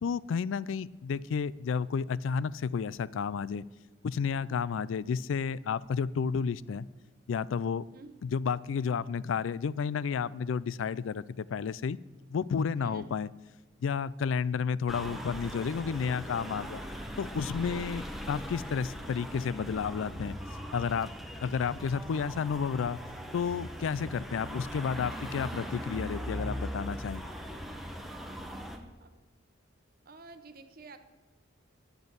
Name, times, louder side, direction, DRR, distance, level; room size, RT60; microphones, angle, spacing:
voice 1, 0.0-3.6 4.0-6.9 7.3-7.9 8.2-12.0 12.3-13.3 13.8-16.8 17.2-18.0 18.3-20.3 20.7-21.1 21.4-23.0 23.3-27.2, left 6 dB, 80° left, 20 dB, 0.4 m, -31 dB
voice 2, 12.7-13.1 17.7-17.9 29.0-29.1 30.0-31.0, right 3 dB, 50° right, 9 dB, 0.9 m, -50 dB
sound 1, 14.9-28.8, equal, ahead, 0.9 m, -40 dB
9.1 x 7.8 x 8.0 m, 1.2 s
head